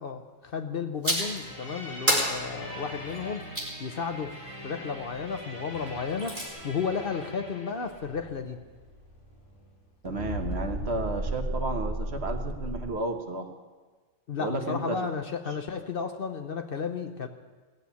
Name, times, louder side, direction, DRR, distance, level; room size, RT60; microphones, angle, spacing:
voice 1, 0.0-3.4 3.8-4.4 4.6-8.6 14.3-17.3, left 5 dB, 50° left, 7 dB, 1.0 m, -33 dB
sound 1, 1.0-1.4 2.1-3.8 5.9-6.5, right 1 dB, 40° right, 3.9 m, -29 dB
onegun of love, 1.2-9.8 10.1-12.9, equal, 25° left, 3.3 m, -38 dB
voice 2, 10.0-13.5 14.4-15.0, right 2 dB, 60° right, 4 dB, 1.5 m, -32 dB
17.0 x 7.8 x 8.4 m, 1.4 s
omnidirectional pair, 1.3 m